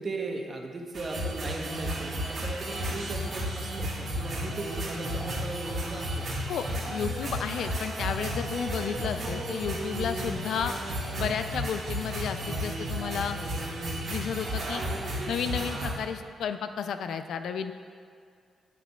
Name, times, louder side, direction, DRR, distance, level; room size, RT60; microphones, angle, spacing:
voice 1, 0.0-6.5, right 2 dB, 45° right, 2 dB, 1.0 m, -38 dB
sound 1, 0.9-15.9, equal, 65° right, 1.4 m, -33 dB
voice 2, 6.5-10.7 11.2-13.4 14.1-14.8 15.3-17.7, left 7 dB, 80° left, 8 dB, 0.3 m, -32 dB
8.2 x 8.1 x 2.3 m, 2.3 s
cardioid pair, 75°, 0 cm